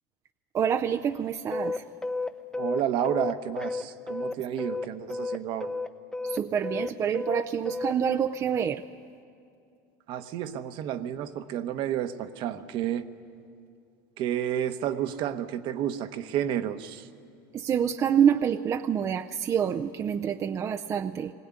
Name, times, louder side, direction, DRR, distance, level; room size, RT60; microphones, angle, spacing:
voice 1, 0.5-1.8 6.2-8.8 17.5-21.3, right 8 dB, 30° right, 7 dB, 0.5 m, -27 dB
sound 1, 1.5-4.8 5.1-7.9, left 3 dB, 5° left, 0.8 m, -32 dB
voice 2, 2.6-5.7 10.1-13.1 14.2-17.1, right 10 dB, 55° right, 10 dB, 1.0 m, -31 dB
20.5 x 17.0 x 9.8 m, 2.4 s
supercardioid pair, 110°, 10 cm